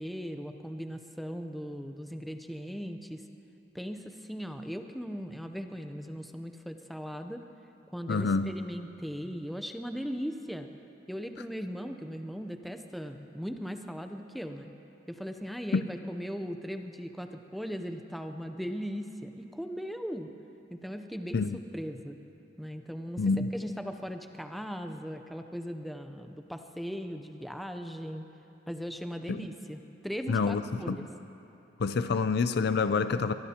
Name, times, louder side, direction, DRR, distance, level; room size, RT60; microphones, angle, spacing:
voice 1, 0.0-3.2 3.7-7.5 7.9-10.7 11.1-14.7 15.1-20.3 20.7-21.4 21.7-22.2 22.6-28.3 28.7-31.1, equal, ahead, 6 dB, 0.6 m, -38 dB
voice 2, 8.1-8.5 15.7-15.8 21.3-21.6 23.2-23.5 29.3-29.5 30.3-31.0 31.8-33.3, left 4 dB, 60° left, 11 dB, 0.4 m, -27 dB
23.0 x 21.0 x 2.9 m, 2.8 s
head